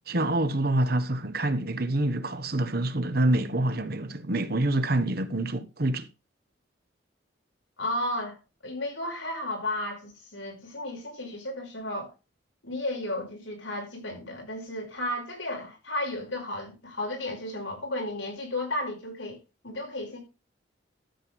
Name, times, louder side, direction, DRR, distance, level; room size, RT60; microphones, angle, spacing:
voice 1, 0.1-6.1, right 1 dB, 55° right, 1.2 m, -26 dB
voice 2, 7.8-12.1 12.6-20.2, left 1 dB, 90° left, 5.2 m, -33 dB
13.0 x 7.8 x 3.5 m
head